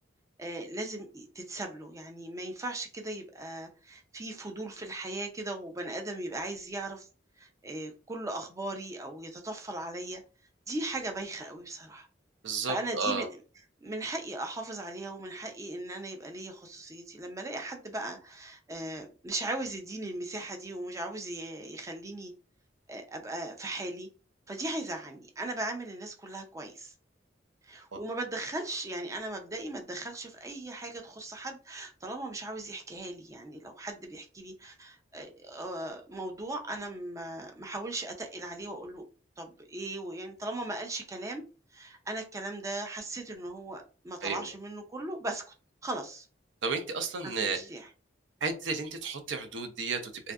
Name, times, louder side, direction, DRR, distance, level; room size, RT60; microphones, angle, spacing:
voice 1, 0.4-7.1 7.4-10.2 10.7-12.1 12.7-13.3 13.8-22.3 22.9-24.1 24.5-26.9 27.6-39.0 39.4-41.4 41.7-45.4 45.8-46.3 47.2-47.9, right 2 dB, 15° right, 0.4 m, -38 dB
voice 2, 12.4-13.3 27.9-28.0 44.2-44.5 46.6-47.6 48.4-50.3, right 4 dB, 90° right, 0.5 m, -32 dB
2.5 x 2.3 x 2.3 m
head